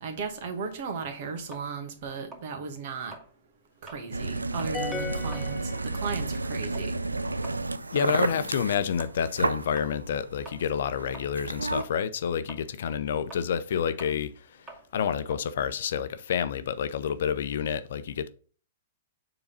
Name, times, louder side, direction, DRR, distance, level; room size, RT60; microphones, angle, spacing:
voice 1, 0.0-3.1 3.8-6.9 8.0-8.5, right 5 dB, 50° right, 1.8 m, -36 dB
sound 1, 1.5-4.1 4.5-4.8 5.2-11.5 11.8-16.6, right 2 dB, 15° right, 2.1 m, -49 dB
sound 2, 4.1-11.8, right 3 dB, 90° right, 0.4 m, -32 dB
sound 3, 4.7-6.5, left 5 dB, 10° left, 0.5 m, -37 dB
voice 2, 7.9-18.3, left 8 dB, 60° left, 0.6 m, -29 dB
7.0 x 4.0 x 5.3 m
figure-of-eight pair, 110°, 0 cm